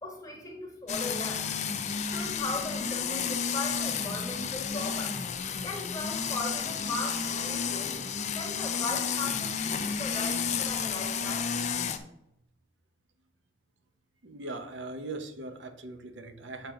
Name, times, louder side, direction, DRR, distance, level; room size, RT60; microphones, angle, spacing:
voice 1, 0.0-1.5 2.0-5.2 5.6-7.9 8.3-11.5, left 2 dB, 20° left, 0 dB, 1.4 m, -38 dB
sound 1, 0.9-12.0, left 6 dB, 40° left, 0.5 m, -31 dB
voice 2, 14.2-16.7, right 2 dB, 80° right, 8 dB, 0.8 m, -40 dB
6.6 x 3.9 x 5.6 m, 0.82 s
head